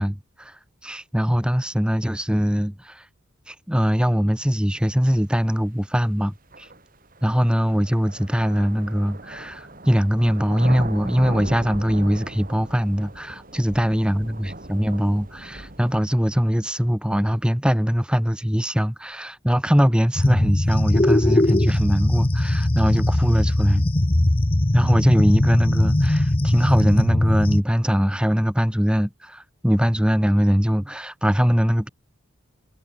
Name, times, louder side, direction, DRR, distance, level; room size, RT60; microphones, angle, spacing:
voice 1, 0.0-3.1 3.5-6.7 7.2-23.9 24.7-31.9, equal, 5° right, 1.3 m, -21 dB
sound 1, 5.4-5.5 6.5-16.0, right 1 dB, 40° right, 4.1 m, -37 dB
sound 2, 20.2-27.6, left 1 dB, 25° left, 0.9 m, -20 dB
head